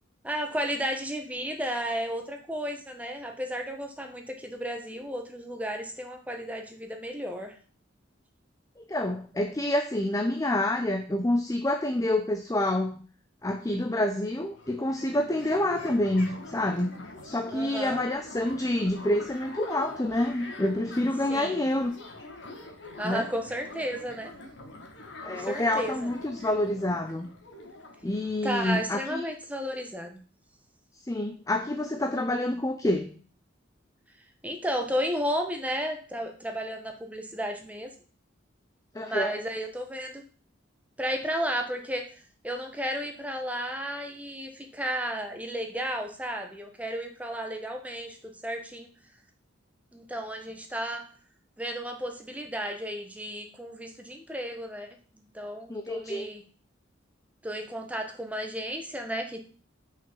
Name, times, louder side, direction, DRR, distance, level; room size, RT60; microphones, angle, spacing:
voice 1, 0.2-7.6 17.5-18.0 21.3-21.6 23.0-24.3 25.3-26.1 28.4-30.2 34.4-37.9 39.0-40.2 41.0-42.0 42.4-48.9 49.9-51.0 51.6-54.9 55.1-56.4 57.4-59.5, equal, 10° right, 4 dB, 1.2 m, -33 dB
voice 2, 8.8-13.0 13.4-21.9 23.0-23.3 25.2-27.3 28.0-29.2 31.0-33.2 38.9-39.4 55.7-56.3, left 1 dB, 20° left, 6 dB, 0.6 m, -28 dB
sound 1, 14.4-29.0, left 2 dB, 70° left, 1.8 m, -44 dB
6.3 x 5.7 x 6.9 m, 0.41 s
head